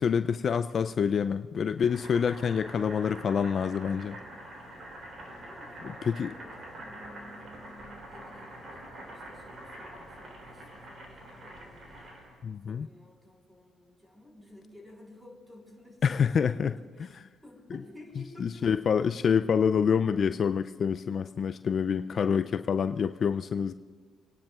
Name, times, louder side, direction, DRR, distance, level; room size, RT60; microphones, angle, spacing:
voice 1, 0.0-4.2 5.8-6.3 12.4-12.9 16.0-16.7 17.0-17.3 18.4-23.7, left 7 dB, 50° left, 10 dB, 0.3 m, -27 dB
Boiling, 1.8-12.4, right 1 dB, 50° right, 3.4 m, -45 dB
voice 2, 4.0-4.8 5.4-12.0 12.7-17.1 17.4-18.7, left 1 dB, 10° right, -1 dB, 3.8 m, -53 dB
29.0 x 10.5 x 2.4 m, 1.5 s
cardioid pair, 90°, 0 cm